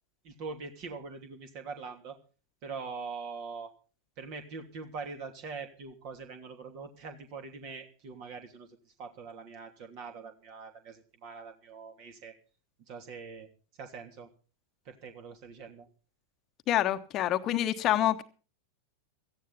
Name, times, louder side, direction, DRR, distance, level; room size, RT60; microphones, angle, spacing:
voice 1, 0.2-2.2 2.6-3.7 4.2-12.4 12.9-13.5 13.8-14.3 14.8-15.9, right 4 dB, 45° right, 5 dB, 2.9 m, -43 dB
voice 2, 16.7-18.2, left 13 dB, 35° left, 10 dB, 1.1 m, -27 dB
17.0 x 14.0 x 4.2 m, 0.37 s
figure-of-eight pair, 90°, 0 cm